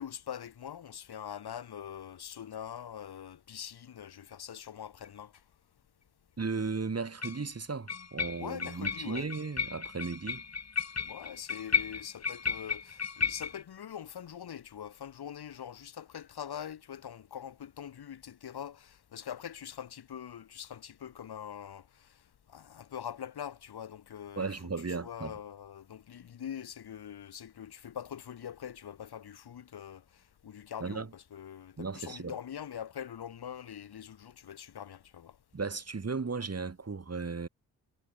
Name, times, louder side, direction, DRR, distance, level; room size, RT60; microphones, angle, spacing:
voice 1, 0.0-5.3 8.4-9.3 11.0-22.1 22.5-24.6 24.9-35.4, left 9 dB, 60° left, 3.1 m, -43 dB
sound 1, 5.1-5.2 7.2-7.5 7.9-13.6, left 5 dB, 35° left, 2.2 m, -34 dB
voice 2, 6.4-10.4 24.4-25.3 30.8-31.1 31.8-32.3 35.5-37.5, right 4 dB, 35° right, 3.4 m, -35 dB
hypercardioid pair, 40°, 43 cm